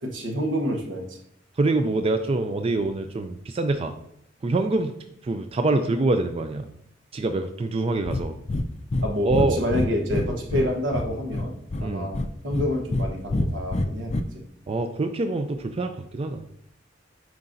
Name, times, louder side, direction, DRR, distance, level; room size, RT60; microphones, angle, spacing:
voice 1, 0.0-1.2 9.0-14.4, equal, 80° right, 3 dB, 1.1 m, -28 dB
voice 2, 1.6-4.0 4.4-5.0 5.2-6.7 7.1-8.3 9.2-9.6 11.8-12.1 14.7-16.4, right 2 dB, 30° right, 7 dB, 0.4 m, -25 dB
Breathing, 8.1-8.2 8.5-8.7 8.9-9.1 9.3-10.7 10.9-11.8 12.1-13.1 13.3-14.2, left 2 dB, 35° left, 0.4 m, -25 dB
9.5 x 4.9 x 2.6 m, 0.73 s
head